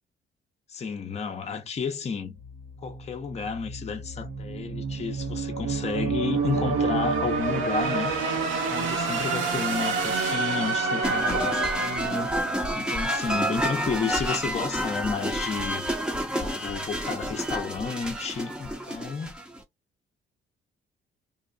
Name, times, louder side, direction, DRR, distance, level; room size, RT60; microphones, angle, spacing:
voice 1, 0.7-2.4 2.8-8.2 8.7-12.3 12.7-15.9 16.3-19.3, left 5 dB, 35° left, 0.6 m, -32 dB
sound 1, 2.4-13.4, right 4 dB, 85° right, 0.8 m, -29 dB
sound 2, 11.0-19.6, equal, 5° right, 0.7 m, -29 dB
2.7 x 2.1 x 2.6 m
cardioid pair, 90°, 20 cm